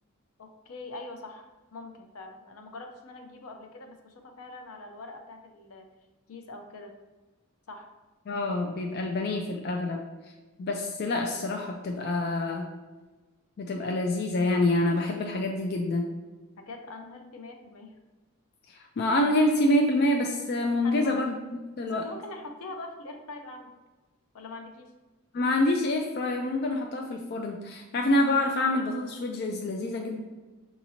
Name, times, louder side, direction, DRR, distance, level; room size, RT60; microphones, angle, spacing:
voice 1, 0.4-5.9 6.3-7.0 7.7-7.9 16.6-17.9 20.8-21.2 21.8-23.7 24.3-24.9, left 2 dB, 80° left, 4 dB, 0.6 m, -43 dB
voice 2, 8.3-10.0 10.2-10.3 10.6-12.7 13.6-16.1 18.7-21.4 21.8-22.1 25.3-30.2, left 1 dB, 45° left, 2 dB, 0.4 m, -26 dB
5.8 x 2.9 x 2.7 m, 1.2 s
head